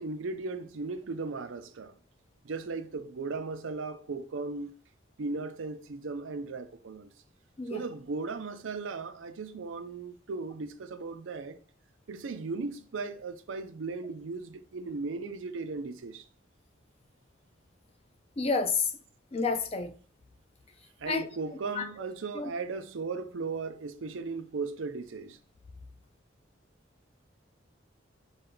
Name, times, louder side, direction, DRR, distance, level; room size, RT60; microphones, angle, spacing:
voice 1, 0.0-1.9 2.4-4.7 5.2-7.1 7.7-11.6 12.1-16.2 21.0-25.4, right 4 dB, 90° right, 0.5 m, -37 dB
voice 2, 18.4-18.9 19.3-19.9 21.1-21.3 21.8-21.9 22.3-22.5, left 4 dB, 30° left, 0.4 m, -29 dB
5.4 x 2.3 x 3.8 m
head